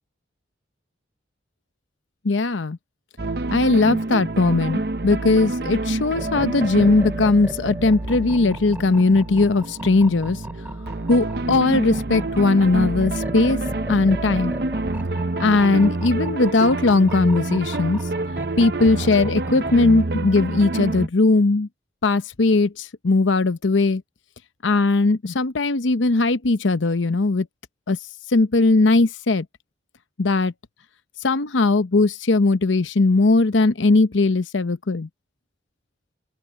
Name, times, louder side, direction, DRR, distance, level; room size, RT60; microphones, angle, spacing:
voice 1, 2.2-2.8 3.5-10.4 11.1-13.6 13.9-14.5 15.4-18.0 18.6-21.7 22.0-24.0 24.6-27.5 27.9-28.0 28.3-29.5 30.2-30.5 31.2-35.1, left 3 dB, 80° left, 0.8 m, -19 dB
sound 1, 3.2-21.1, right 2 dB, 55° right, 0.7 m, -28 dB
sound 2, 6.1-19.9, equal, 10° right, 3.6 m, -37 dB
open air
head